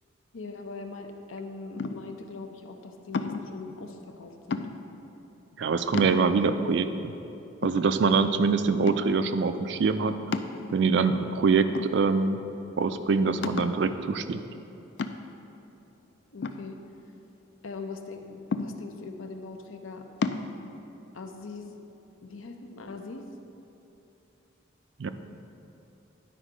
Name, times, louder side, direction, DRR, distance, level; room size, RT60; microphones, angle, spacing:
voice 1, 0.3-4.7 8.5-8.7 16.3-16.8 17.6-20.1 21.1-21.8 22.2-23.2, left 4 dB, 80° left, 5 dB, 0.7 m, -41 dB
sound 1, 1.8-2.2 3.1-3.6 4.5-5.0 5.5-5.6 5.9-6.6 7.1-7.2 7.6-8.4 8.9-9.3 10.3-11.0 11.7-12.4 12.7-12.8 13.4-13.9 15.0-15.5 16.4-17.3 18.5-19.1 20.2-20.5, left 4 dB, 55° left, 0.3 m, -33 dB
voice 2, 5.6-7.1 7.6-10.1 10.7-12.4 12.8-14.4 25.0-25.1, right 4 dB, 60° right, 10 dB, 0.3 m, -24 dB
10.0 x 4.5 x 5.0 m, 2.9 s
head